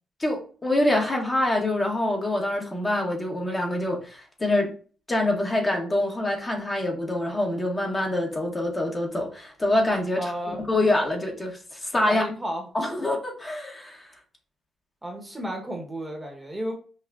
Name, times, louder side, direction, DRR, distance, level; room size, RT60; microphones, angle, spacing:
voice 1, 0.2-4.7 5.1-12.2 12.7-14.1, left 1 dB, 20° left, 0.9 m, -25 dB
voice 2, 10.2-10.6 12.1-12.7 13.0-13.1 15.0-16.7, equal, 15° right, 0.9 m, -32 dB
5.6 x 2.1 x 2.4 m
cardioid pair, 90°, 0 cm